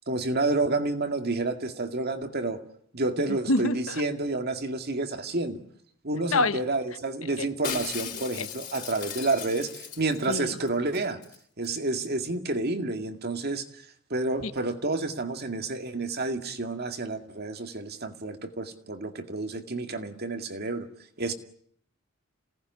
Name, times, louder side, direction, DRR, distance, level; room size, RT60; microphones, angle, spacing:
voice 1, 0.1-2.6 2.9-5.6 6.0-11.2 11.6-13.7 14.1-20.9 21.2-21.3, right 2 dB, 50° right, 2.1 m, -29 dB
voice 2, 3.5-4.0 6.3-6.6 7.4-7.5 10.3-10.5 14.4-14.5, left 2 dB, 70° left, 1.3 m, -25 dB
Shatter, 7.6-10.4 10.7-10.8 10.9-11.4 11.6-11.7, left 7 dB, 35° left, 4.8 m, -37 dB
27.5 x 18.5 x 9.7 m
head